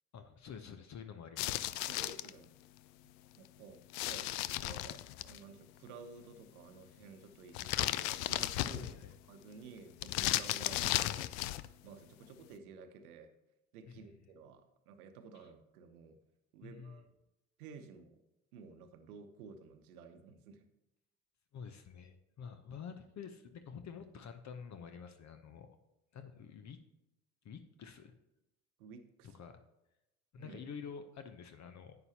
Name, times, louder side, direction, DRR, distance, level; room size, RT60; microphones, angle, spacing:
voice 1, 0.1-1.7 8.8-9.1 13.9-14.0 15.4-15.5 16.6-17.0 21.5-25.8 26.1-26.8 27.4-28.2 29.3-29.5 30.3-32.0, left 6 dB, 40° left, 9 dB, 0.8 m, -48 dB
sound 1, 1.4-2.3 3.9-5.4 7.5-9.1 10.0-11.7, left 16 dB, 60° left, 0.5 m, -35 dB
voice 2, 1.9-2.5 3.4-9.0 9.3-13.3 13.7-16.2 16.5-17.1 17.6-18.2 18.5-20.7 28.8-29.4 30.4-30.6, right 5 dB, 75° right, 8 dB, 0.9 m, -53 dB
11.0 x 8.5 x 2.9 m, 0.92 s
hypercardioid pair, 60°, 45 cm